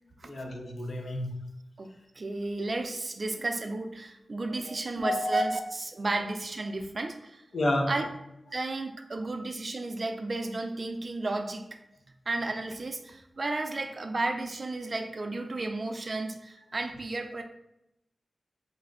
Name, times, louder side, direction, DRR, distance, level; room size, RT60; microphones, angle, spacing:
voice 1, 0.2-1.5 4.3-4.5 5.0-5.3 7.5-8.0, left 1 dB, 60° left, 1 dB, 0.7 m, -30 dB
voice 2, 1.8-7.4 7.9-8.1 8.5-11.7 12.3-17.4, right 2 dB, 45° right, 5 dB, 0.4 m, -33 dB
4.1 x 2.6 x 3.8 m, 0.84 s
wide cardioid pair, 100°, 0 cm